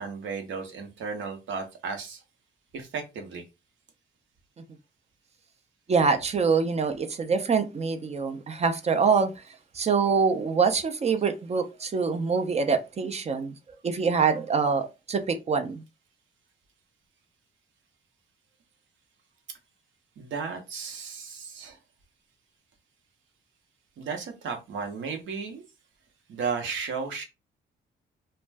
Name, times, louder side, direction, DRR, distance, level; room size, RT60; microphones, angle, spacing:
voice 1, 0.0-2.2 2.7-3.4 20.2-21.8 24.0-25.6 26.3-27.2, right 5 dB, 70° right, 0.8 m, -34 dB
voice 2, 5.9-9.3 9.7-13.5 13.8-15.8, right 5 dB, 35° right, 0.5 m, -25 dB
2.4 x 2.2 x 3.3 m
cardioid pair, 90°, 20 cm